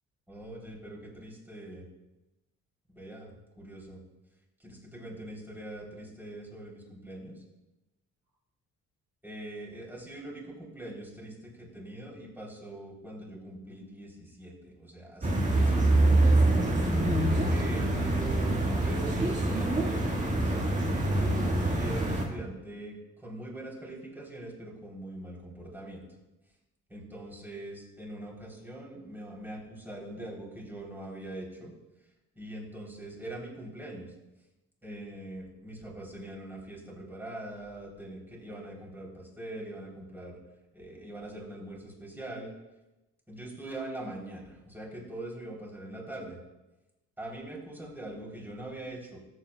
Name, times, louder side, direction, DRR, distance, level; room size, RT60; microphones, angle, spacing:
voice 1, 0.3-1.9 2.9-4.0 4.6-7.4 9.2-16.0 16.9-18.5 18.8-21.2 21.7-26.0 26.9-31.7 32.3-34.1 34.8-40.4 40.7-42.5 43.3-46.4 47.2-49.2, right 1 dB, 5° right, -3 dB, 3.5 m, -42 dB
sound 1, 15.2-22.3, right 2 dB, 25° right, 1.9 m, -25 dB
14.0 x 7.8 x 2.3 m, 1.0 s
cardioid pair, 90°, 30 cm